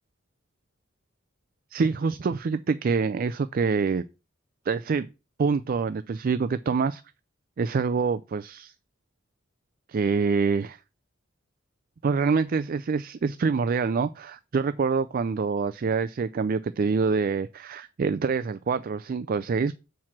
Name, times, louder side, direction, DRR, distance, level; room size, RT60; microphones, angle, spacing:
voice 1, 1.7-4.0 4.7-5.1 5.4-7.0 7.6-8.7 9.9-10.8 12.0-19.7, right 5 dB, 45° right, 0.4 m, -26 dB
7.4 x 4.7 x 5.8 m
head